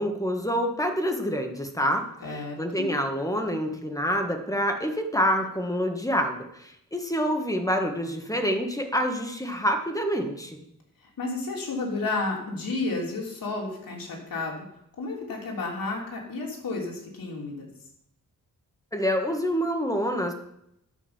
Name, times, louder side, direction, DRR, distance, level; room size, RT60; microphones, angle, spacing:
voice 1, 0.0-10.6 18.9-20.3, equal, 10° left, 4 dB, 1.5 m, -27 dB
voice 2, 2.2-2.9 11.2-14.6 15.0-17.7, left 3 dB, 90° left, -1 dB, 3.4 m, -32 dB
10.5 x 6.6 x 7.2 m, 0.77 s
wide cardioid pair, 125°, 33 cm